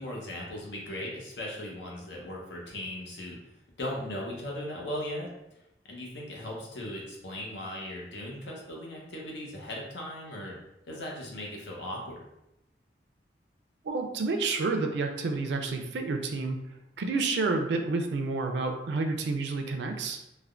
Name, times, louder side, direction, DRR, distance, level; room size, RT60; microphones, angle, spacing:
voice 1, 0.0-3.4 3.8-5.3 5.9-10.5 10.9-12.2, left 1 dB, 80° left, -2 dB, 0.8 m, -38 dB
voice 2, 13.8-16.6 17.0-20.2, right 3 dB, 75° right, 5 dB, 0.4 m, -29 dB
3.3 x 2.1 x 2.4 m, 0.88 s
head